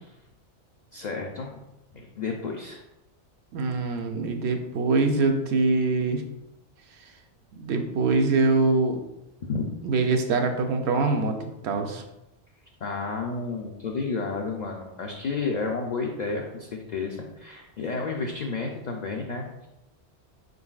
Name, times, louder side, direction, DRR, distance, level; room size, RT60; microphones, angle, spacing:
voice 1, 0.9-1.6 1.9-2.8 9.5-9.6 12.8-19.7, left 4 dB, 60° left, 1 dB, 0.4 m, -31 dB
voice 2, 3.5-6.2 7.5-9.0 9.8-11.4 11.6-12.0, right 3 dB, 70° right, 4 dB, 0.8 m, -24 dB
4.5 x 3.8 x 2.3 m, 0.92 s
omnidirectional pair, 1.2 m